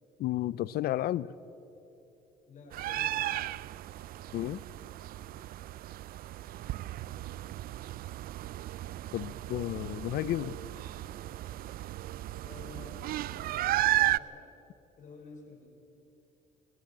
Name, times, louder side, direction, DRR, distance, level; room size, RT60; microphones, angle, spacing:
voice 1, 0.2-1.3 4.3-4.6 9.1-10.6, left 14 dB, 65° left, 20 dB, 0.6 m, -32 dB
voice 2, 2.5-3.5 12.4-14.5 15.0-15.7, left 4 dB, 50° left, 0 dB, 5.9 m, -50 dB
sound 1, 2.7-14.2, right 15 dB, 60° right, 0.4 m, -34 dB
21.5 x 17.5 x 8.8 m, 3.0 s
cardioid pair, 110°, 17 cm